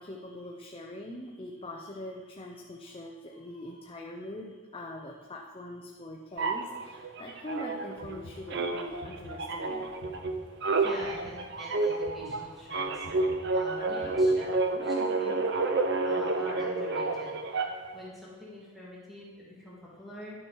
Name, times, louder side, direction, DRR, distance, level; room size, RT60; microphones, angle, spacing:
voice 1, 0.0-10.0, left 1 dB, 25° left, 0 dB, 0.6 m, -42 dB
sound 1, 6.4-8.2 8.5-18.0, right 3 dB, 55° right, 0.6 m, -29 dB
sound 2, 8.0-14.7, left 1 dB, 85° left, 1.5 m, -50 dB
voice 2, 10.7-15.4 16.0-20.5, left 1 dB, ahead, -8 dB, 1.9 m, -45 dB
11.0 x 6.1 x 4.7 m, 1.4 s
head